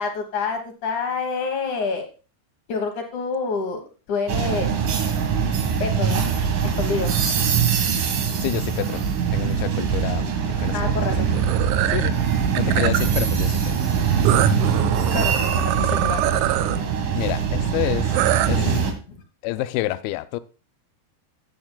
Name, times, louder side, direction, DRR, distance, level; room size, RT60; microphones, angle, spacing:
voice 1, 0.0-2.1 2.7-3.8 4.1-4.7 5.8-6.2 6.7-7.1 10.7-11.3 15.1-16.2 18.5-19.2, left 4 dB, 60° left, 2.3 m, -27 dB
sound 1, 4.3-18.9, right 7 dB, 60° right, 2.9 m, -22 dB
voice 2, 8.4-9.0 9.3-11.4 11.9-12.2 12.6-13.7 17.1-18.6 19.4-20.4, left 16 dB, 80° left, 2.4 m, -29 dB
sound 2, 11.3-12.1 12.5-13.1 14.2-16.8 18.1-18.5, right 14 dB, 80° right, 2.4 m, -24 dB
15.5 x 8.7 x 2.3 m
omnidirectional pair, 4.7 m